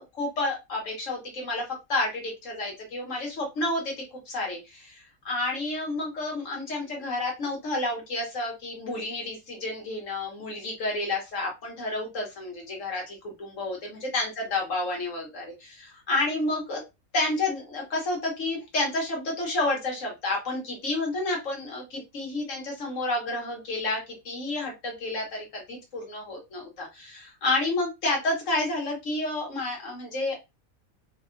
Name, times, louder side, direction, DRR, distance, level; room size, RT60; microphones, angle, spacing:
voice 1, 0.0-16.8 17.1-30.4, left 2 dB, 65° left, 0 dB, 1.2 m, -30 dB
4.5 x 2.1 x 2.4 m, 0.24 s
omnidirectional pair, 1.5 m